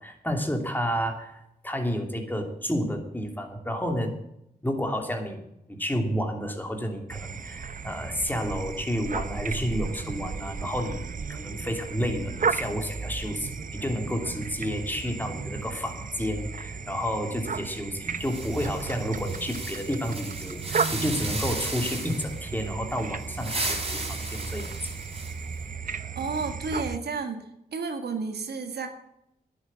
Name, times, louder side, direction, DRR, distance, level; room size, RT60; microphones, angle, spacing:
voice 1, 0.0-4.1 4.6-24.7, equal, 10° left, 3 dB, 2.8 m, -31 dB
sound 1, 7.1-27.0, right 5 dB, 50° right, 0.8 m, -34 dB
sound 2, 18.2-22.4 23.2-25.5, right 2 dB, 35° right, 4.6 m, -35 dB
voice 2, 25.9-27.4 27.7-28.9, right 4 dB, 80° right, 6 dB, 1.8 m, -32 dB
10.5 x 8.0 x 8.7 m, 0.81 s
cardioid pair, 60°, 17 cm